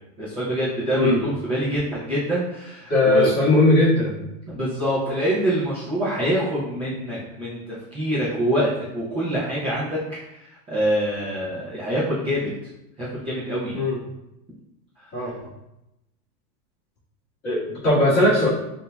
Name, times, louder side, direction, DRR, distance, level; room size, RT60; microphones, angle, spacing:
voice 1, 0.2-3.3 4.5-12.5 13.0-13.8 15.0-15.1, equal, 15° right, -11 dB, 0.6 m, -25 dB
voice 2, 2.9-4.2 13.7-14.0 15.1-15.3 17.4-18.5, left 1 dB, 20° left, -8 dB, 1.5 m, -18 dB
6.0 x 2.7 x 2.2 m, 0.89 s
supercardioid pair, 165°, 44 cm